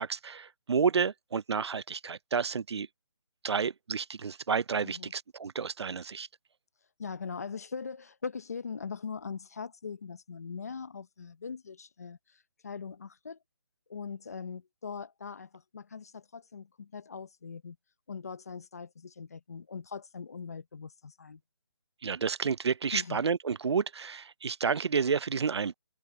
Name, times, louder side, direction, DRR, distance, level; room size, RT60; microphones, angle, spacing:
voice 1, 0.0-2.9 3.4-6.3 22.0-25.7, right 6 dB, 75° right, 0.5 m, -30 dB
voice 2, 7.0-13.4 13.9-17.8 18.1-21.4 22.9-23.2, left 5 dB, 35° left, 0.7 m, -41 dB
open air
hypercardioid pair, 180°, 14 cm